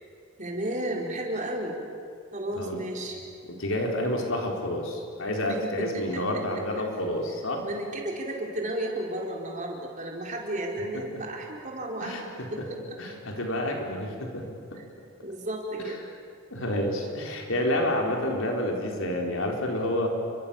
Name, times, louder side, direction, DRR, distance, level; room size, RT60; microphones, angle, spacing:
voice 1, 0.4-1.8 2.3-3.2 5.4-6.2 7.6-12.1 12.5-13.0 14.7-14.8 15.2-16.0, right 1 dB, 40° right, -1 dB, 4.7 m, -33 dB
voice 2, 3.4-7.6 12.0-12.2 12.6-12.7 13.0-14.4 14.7-14.8 16.5-20.1, left 1 dB, 80° left, 1 dB, 4.5 m, -29 dB
29.5 x 24.5 x 7.3 m, 2.3 s
head